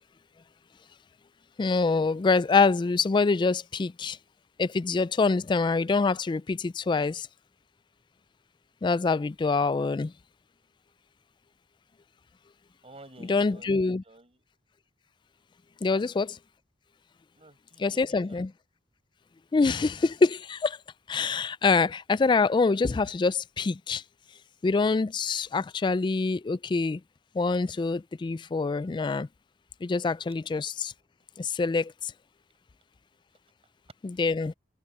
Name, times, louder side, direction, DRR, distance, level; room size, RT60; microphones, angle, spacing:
voice 1, 1.6-4.2 4.6-7.3 8.8-10.1 13.3-14.0 15.8-16.3 17.8-18.5 19.5-20.8 21.1-24.0 24.6-27.0 27.3-29.3 29.8-30.9 31.4-32.1 34.0-34.5, left 4 dB, 25° left, 0.3 m, -25 dB
voice 2, 12.8-14.4 15.8-16.1 17.3-18.4, right 2 dB, 35° right, 6.3 m, -52 dB
head